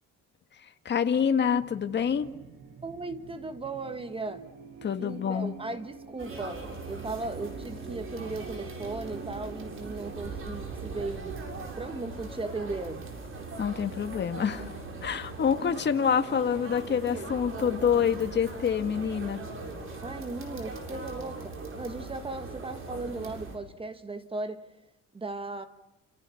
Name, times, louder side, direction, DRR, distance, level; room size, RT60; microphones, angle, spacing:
voice 1, 0.9-2.3 4.8-5.6 13.6-14.7 15.0-19.4, left 7 dB, 35° left, 1.9 m, -27 dB
sound 1, 0.9-14.4, right 5 dB, 90° right, 6.8 m, -47 dB
voice 2, 2.8-4.5 5.0-13.1 20.0-24.7 25.1-25.7, right 3 dB, 15° right, 1.5 m, -37 dB
sound 2, 6.2-23.6, right 3 dB, 40° right, 7.4 m, -40 dB
29.0 x 29.0 x 7.2 m
cardioid pair, 160°, 32 cm